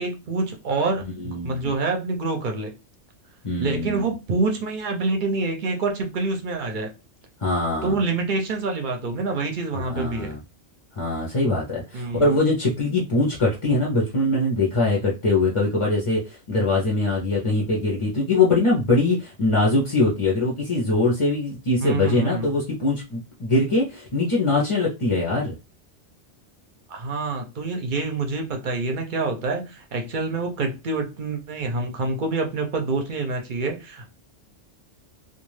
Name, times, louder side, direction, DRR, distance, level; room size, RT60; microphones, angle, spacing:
voice 1, 0.0-2.7 3.6-6.9 7.8-10.3 11.9-12.4 21.8-22.5 26.9-34.1, right 3 dB, 50° right, 3 dB, 0.6 m, -26 dB
voice 2, 1.0-1.7 3.4-4.1 7.4-8.0 9.7-10.4 10.9-25.6, left 2 dB, 35° left, -4 dB, 0.5 m, -22 dB
2.3 x 2.3 x 3.2 m, 0.28 s
omnidirectional pair, 1.3 m